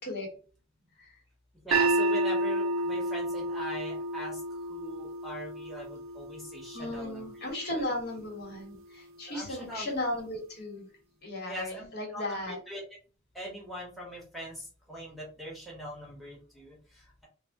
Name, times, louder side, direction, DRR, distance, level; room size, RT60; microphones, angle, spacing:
voice 1, 1.6-7.3 7.8-7.9 9.3-9.9 11.5-12.8 13.3-17.3, equal, ahead, -3 dB, 1.1 m, -41 dB
sound 1, 1.7-7.9, right 2 dB, 80° right, 0.6 m, -31 dB
voice 2, 6.7-10.9 11.2-12.6, left 1 dB, 55° left, -1 dB, 1.4 m, -36 dB
3.4 x 2.1 x 3.6 m, 0.37 s
head